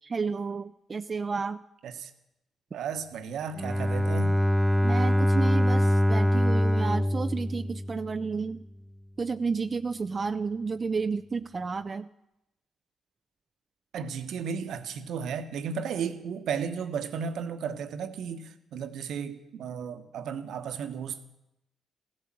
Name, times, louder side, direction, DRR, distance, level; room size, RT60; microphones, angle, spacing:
voice 1, 0.0-1.6 4.8-8.6 9.2-12.1, right 4 dB, 40° right, 9 dB, 0.5 m, -31 dB
voice 2, 2.7-4.4 13.9-21.3, right 6 dB, 75° right, 9 dB, 1.3 m, -34 dB
Bowed string instrument, 3.6-8.4, equal, 15° right, 0.8 m, -24 dB
15.5 x 12.0 x 7.7 m, 0.88 s
supercardioid pair, 55°, 0 cm